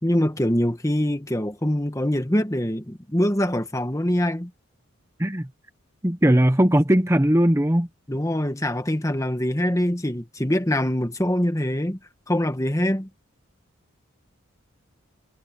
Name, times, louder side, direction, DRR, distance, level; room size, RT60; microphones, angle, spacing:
voice 1, 0.0-4.5 8.1-12.0 12.3-13.1, left 1 dB, 15° left, 1.4 m, -24 dB
voice 2, 6.0-7.9, equal, 15° right, 0.9 m, -19 dB
head